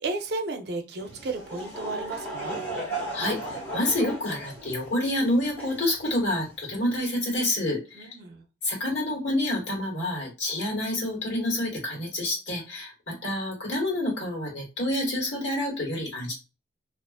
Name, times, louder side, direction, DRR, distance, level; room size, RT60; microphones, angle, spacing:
voice 1, 0.0-2.6 7.9-8.4, right 3 dB, 60° right, 4 dB, 0.5 m, -33 dB
Laughter / Crowd, 1.0-6.7, right 1 dB, 10° left, 1.0 m, -36 dB
voice 2, 3.1-8.1 8.6-16.3, left 1 dB, 90° left, -1 dB, 1.3 m, -28 dB
2.4 x 2.4 x 2.3 m, 0.29 s
head